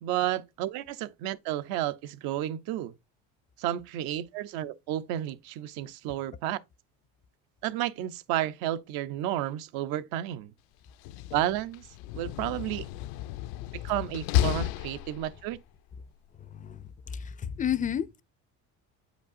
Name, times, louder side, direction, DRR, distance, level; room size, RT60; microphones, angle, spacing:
voice 1, 0.0-2.9 3.6-6.6 7.6-10.5 11.3-11.9 12.1-12.9 13.8-15.6, right 13 dB, 75° right, 0.7 m, -31 dB
Slam, 10.9-15.6, left 13 dB, 75° left, 0.5 m, -32 dB
voice 2, 16.4-18.1, left 8 dB, 25° left, 0.4 m, -32 dB
8.1 x 5.2 x 2.5 m
cardioid pair, 115°, 37 cm